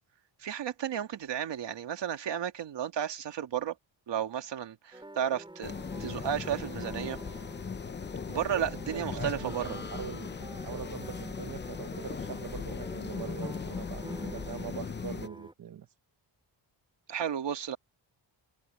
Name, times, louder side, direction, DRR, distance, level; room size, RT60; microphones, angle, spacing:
voice 1, 0.4-3.7 4.1-5.7 6.0-7.2 8.3-9.8 17.1-17.8, right 9 dB, 65° right, 2.3 m, -33 dB
sound 1, 4.9-15.5, right 1 dB, 10° right, 6.5 m, -48 dB
sound 2, 5.6-15.3, left 5 dB, 25° left, 0.7 m, -38 dB
voice 2, 8.3-15.9, right 8 dB, 45° right, 0.9 m, -43 dB
wide cardioid pair, 145°, 46 cm